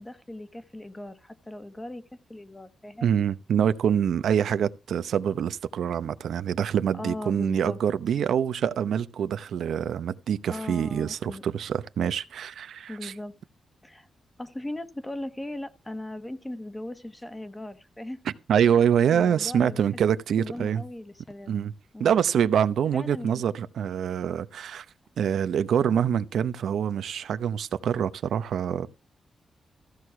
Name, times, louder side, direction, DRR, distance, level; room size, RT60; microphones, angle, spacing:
voice 1, 0.0-2.0 2.3-3.1 6.9-7.8 10.5-11.4 12.9-13.4 13.8-14.1 14.4-18.2 19.1-19.8 20.4-21.5 21.9-22.2 22.9-23.4, left 1 dB, 10° left, 1.2 m, -38 dB
voice 2, 3.0-13.1 18.5-20.8 21.5-21.7 22.0-24.8 25.2-28.9, right 8 dB, 85° right, 0.8 m, -25 dB
14.5 x 6.4 x 5.9 m
wide cardioid pair, 120°, 0 cm